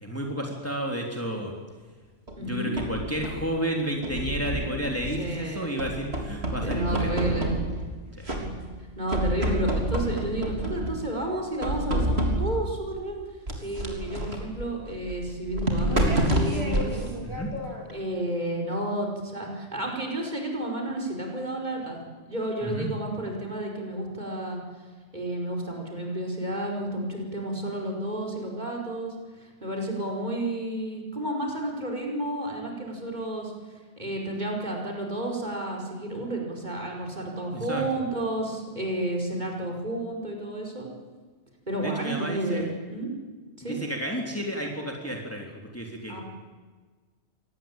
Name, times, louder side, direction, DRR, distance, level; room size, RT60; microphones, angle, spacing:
voice 1, 0.0-1.5 2.4-7.4 8.2-8.3 17.2-17.5 22.6-22.9 37.5-37.8 41.8-42.7 43.7-46.2, equal, 10° left, 1 dB, 3.3 m, -31 dB
sound 1, 2.3-3.5 4.0-5.4 5.8-7.9 8.3-8.8 9.1-11.1 11.6-12.7 13.5-18.0, right 1 dB, 55° right, 3.9 m, -29 dB
voice 2, 2.4-2.7 5.2-5.8 6.6-7.5 9.0-13.2 13.6-17.1 17.9-22.0 22.2-24.6 25.1-33.5 34.0-40.9 41.7-43.1 43.6-43.8 46.1-46.2, right 1 dB, 35° right, 0 dB, 5.5 m, -31 dB
25.5 x 19.0 x 9.0 m, 1.4 s
omnidirectional pair, 1.3 m